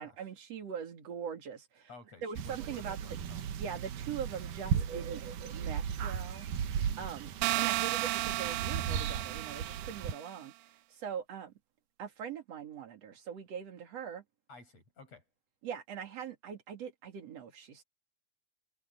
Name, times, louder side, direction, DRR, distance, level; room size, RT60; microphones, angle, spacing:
voice 1, 0.0-1.9 2.2-3.2 3.6-5.2 5.5-6.5 7.0-7.3 7.6-11.5 12.0-14.2 15.6-17.8, right 7 dB, 45° right, 3.2 m, -42 dB
voice 2, 1.9-3.5 14.5-15.2, left 3 dB, 40° left, 8.2 m, -53 dB
sound 1, 2.4-10.1, right 8 dB, 65° right, 2.5 m, -36 dB
sound 2, 7.4-10.3, right 19 dB, 80° right, 2.2 m, -33 dB
omnidirectional pair, 4.6 m